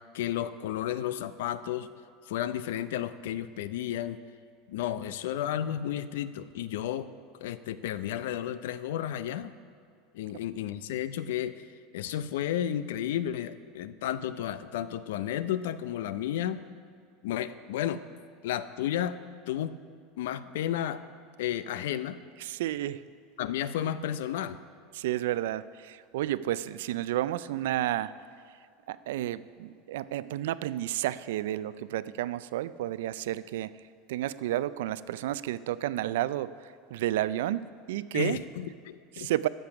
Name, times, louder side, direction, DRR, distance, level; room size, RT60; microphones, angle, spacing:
voice 1, 0.1-1.9 2.3-4.2 4.7-7.1 7.4-9.5 10.1-11.6 11.9-16.6 17.2-18.0 18.4-19.2 19.5-19.7 20.2-21.0 21.4-22.2 23.4-24.6 38.1-39.3, left 11 dB, 80° left, 14 dB, 0.5 m, -32 dB
voice 2, 22.4-23.0 24.9-28.1 28.5-28.6 28.9-33.7 34.1-38.4 39.1-39.5, right 13 dB, 80° right, 16 dB, 0.3 m, -31 dB
14.5 x 6.8 x 5.9 m, 2.2 s
supercardioid pair, 180°, 0 cm